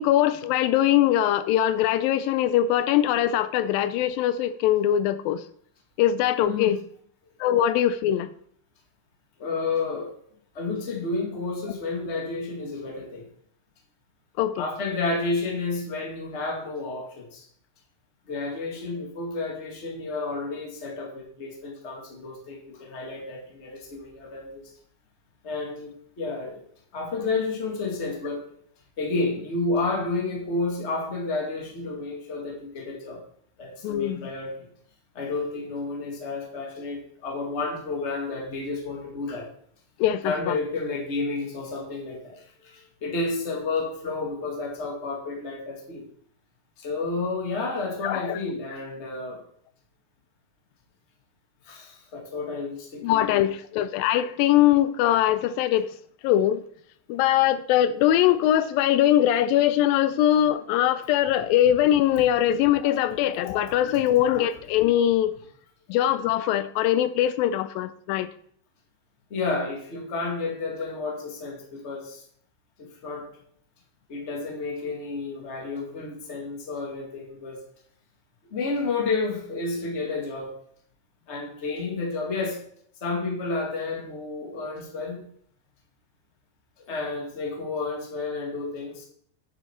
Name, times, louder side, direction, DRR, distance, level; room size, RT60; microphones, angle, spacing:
voice 1, 0.0-5.4 6.0-6.8 7.4-8.3 14.4-14.6 33.8-34.3 40.0-40.6 48.0-48.4 53.0-55.9 56.2-56.6 57.1-65.3 65.9-68.3, left 12 dB, 85° left, 13 dB, 2.3 m, -22 dB
voice 2, 6.4-6.7 9.4-10.1 10.5-13.2 14.6-17.4 18.3-24.7 25.4-26.6 26.9-28.4 29.0-33.2 33.6-34.7 35.1-39.5 40.2-46.0 46.8-49.4 51.6-53.5 69.3-72.2 72.8-73.3 74.1-77.6 78.5-80.5 81.3-82.6 83.0-85.2 86.8-89.0, left 3 dB, 25° left, 0 dB, 1.6 m, -31 dB
9.2 x 7.1 x 4.4 m, 0.63 s
omnidirectional pair, 4.1 m